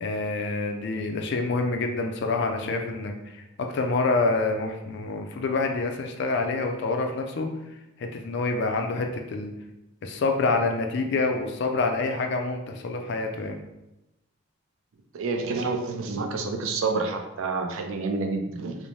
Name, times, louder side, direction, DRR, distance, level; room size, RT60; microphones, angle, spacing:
voice 1, 0.0-3.1 3.6-7.5 8.0-9.5 10.0-13.6, left 3 dB, 55° left, 4 dB, 0.3 m, -27 dB
voice 2, 15.1-18.7, right 3 dB, 70° right, 4 dB, 0.4 m, -28 dB
3.1 x 2.1 x 2.6 m, 0.92 s
head